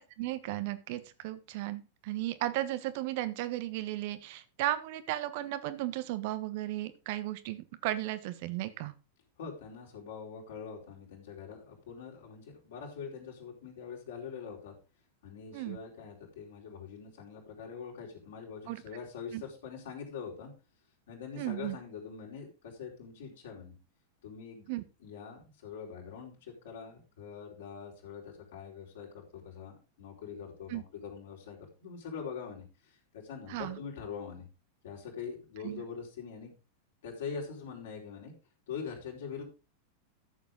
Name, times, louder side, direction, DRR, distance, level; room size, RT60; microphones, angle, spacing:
voice 1, 0.0-8.9 15.5-15.8 18.7-18.8 19.3-19.4 21.4-21.8 24.7-24.8 30.7-30.8 33.5-33.8 35.6-35.8, right 15 dB, 50° right, 13 dB, 1.1 m, -35 dB
voice 2, 9.4-14.7 15.2-20.5 21.1-23.7 24.2-24.7 25.0-34.5 34.8-36.5 37.0-38.3 38.7-39.4, left 6 dB, 60° left, -2 dB, 4.3 m, -43 dB
13.5 x 7.3 x 3.8 m, 0.31 s
figure-of-eight pair, 90°, 0 cm